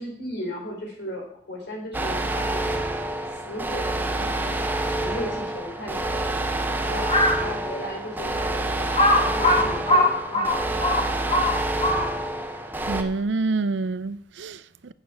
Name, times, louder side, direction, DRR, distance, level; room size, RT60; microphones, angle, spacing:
voice 1, 0.0-2.9 3.3-6.2 6.8-7.1 7.4-11.6, equal, 70° left, 3.6 m, -36 dB
sound 1, 1.9-13.0, right 2 dB, 10° right, 0.7 m, -27 dB
Crow, 7.0-7.5 8.1-8.2 8.9-12.3, left 1 dB, 30° left, 2.1 m, -21 dB
voice 2, 12.9-14.9, right 3 dB, 90° right, 0.5 m, -27 dB
8.6 x 6.7 x 7.0 m
head